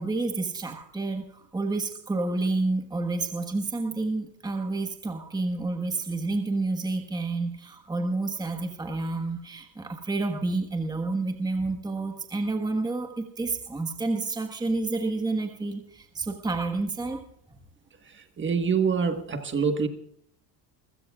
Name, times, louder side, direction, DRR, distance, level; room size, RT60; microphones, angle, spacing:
voice 1, 0.0-17.2, right 3 dB, 10° right, 5 dB, 1.4 m, -29 dB
voice 2, 18.4-19.9, right 5 dB, 25° right, 7 dB, 1.5 m, -25 dB
28.0 x 16.0 x 2.4 m, 0.67 s
cardioid pair, 150°, 48 cm